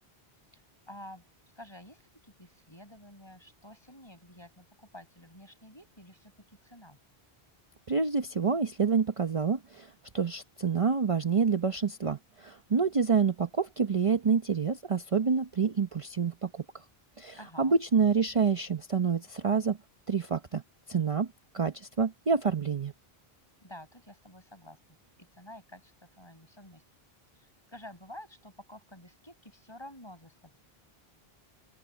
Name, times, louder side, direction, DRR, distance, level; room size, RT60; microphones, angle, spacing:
voice 1, 0.9-1.2 1.6-7.0 17.4-17.8 23.6-24.8 25.2-26.8 27.4-30.6, left 1 dB, 25° left, 7.1 m, -50 dB
voice 2, 7.9-16.6 17.2-19.8 20.1-20.6 20.9-21.3 21.5-22.9, right 5 dB, 35° right, 0.8 m, -27 dB
open air
omnidirectional pair, 1.0 m